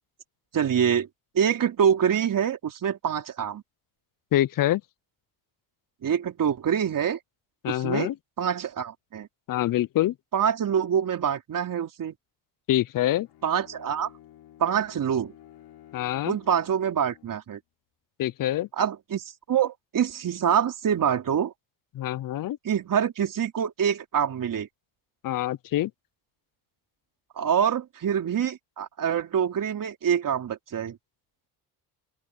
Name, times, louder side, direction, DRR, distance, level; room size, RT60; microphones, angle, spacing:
voice 1, 0.5-1.1 1.3-3.6 6.0-7.2 7.7-8.1 8.4-9.3 10.3-12.1 13.4-14.1 14.6-15.3 16.2-17.6 18.8-21.5 22.6-24.7 27.4-31.0, right 8 dB, 50° right, 4.0 m, -25 dB
voice 2, 4.3-4.8 7.6-8.1 9.5-10.1 12.7-13.3 15.9-16.3 18.2-18.7 21.9-22.6 25.2-25.9, left 13 dB, 55° left, 0.7 m, -25 dB
Bowed string instrument, 13.2-17.5, left 12 dB, 70° left, 7.0 m, -52 dB
open air
cardioid pair, 90°, 40 cm